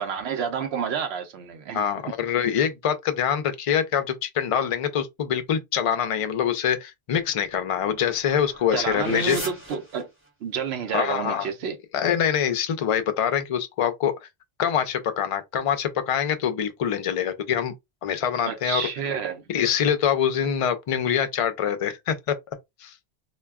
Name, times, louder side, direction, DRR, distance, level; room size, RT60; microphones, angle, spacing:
voice 1, 0.0-2.1 8.7-10.1 10.4-11.8 18.5-19.4, right 7 dB, 85° right, 0.8 m, -29 dB
voice 2, 1.7-9.4 10.9-11.5 11.9-14.1 14.6-17.7 18.0-18.8 19.5-22.3 22.8-22.9, left 8 dB, 55° left, 0.3 m, -24 dB
sound 1, 7.1-10.6, right 1 dB, 15° right, 0.8 m, -40 dB
2.2 x 2.2 x 3.4 m
omnidirectional pair, 1.0 m